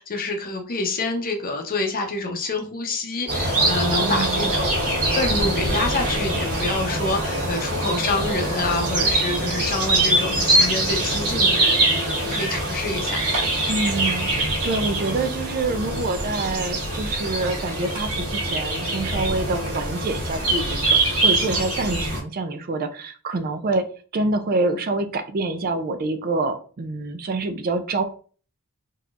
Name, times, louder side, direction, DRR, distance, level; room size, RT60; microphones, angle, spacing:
voice 1, 0.0-13.2, left 3 dB, 40° left, 4 dB, 0.7 m, -27 dB
sound 1, 3.3-22.2, right 2 dB, 75° right, 1.8 m, -23 dB
voice 2, 4.0-4.5 13.7-23.9 24.1-28.0, right 2 dB, 40° right, 8 dB, 0.4 m, -26 dB
sound 2, 5.3-11.0, left 2 dB, 90° left, 1.2 m, -39 dB
3.9 x 2.8 x 2.4 m, 0.40 s
head